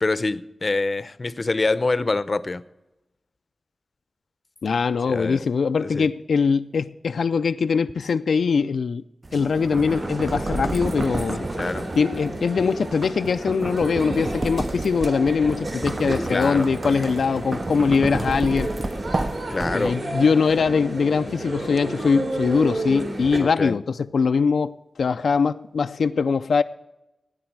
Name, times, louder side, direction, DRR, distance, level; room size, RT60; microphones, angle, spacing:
voice 1, 0.0-2.6 5.1-5.5 5.8-6.1 11.6-11.9 16.3-16.7 19.5-20.1 23.4-23.7, left 3 dB, 40° left, 0.6 m, -25 dB
voice 2, 4.6-9.0 9.3-11.4 12.0-18.7 19.7-26.6, left 5 dB, 85° left, 0.4 m, -22 dB
sound 1, 9.2-20.2, right 2 dB, 30° right, 0.4 m, -31 dB
sound 2, 9.9-23.4, right 1 dB, 65° right, 3.7 m, -32 dB
17.0 x 9.6 x 4.6 m
wide cardioid pair, 100°, 0 cm